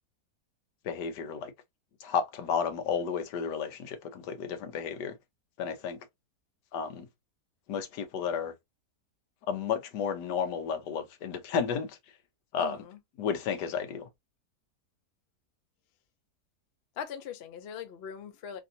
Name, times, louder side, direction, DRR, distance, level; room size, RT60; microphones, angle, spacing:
voice 1, 0.8-1.5 2.0-5.1 5.6-6.0 6.7-7.1 7.7-8.5 9.5-12.0 12.5-12.8 13.2-14.1, left 7 dB, 90° left, 1.3 m, -32 dB
voice 2, 12.6-13.0 17.0-18.6, left 8 dB, 60° left, 0.6 m, -41 dB
3.3 x 2.7 x 2.5 m
omnidirectional pair, 1.8 m